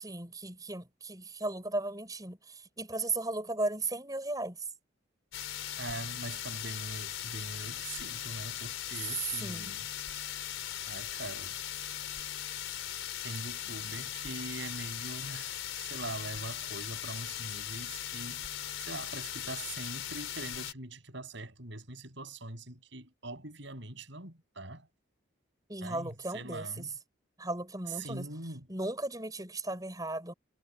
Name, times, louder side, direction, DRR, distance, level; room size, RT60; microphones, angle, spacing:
voice 1, 0.0-4.7 9.4-9.7 25.7-26.9 27.4-28.3 28.7-30.3, right 2 dB, 20° right, 6.3 m, -36 dB
sound 1, 5.3-20.7, left 11 dB, 75° left, 4.1 m, -39 dB
voice 2, 5.8-9.9 10.9-11.6 13.2-18.4 18.8-24.9 25.8-26.9 28.0-28.7, right 2 dB, 60° right, 6.9 m, -42 dB
head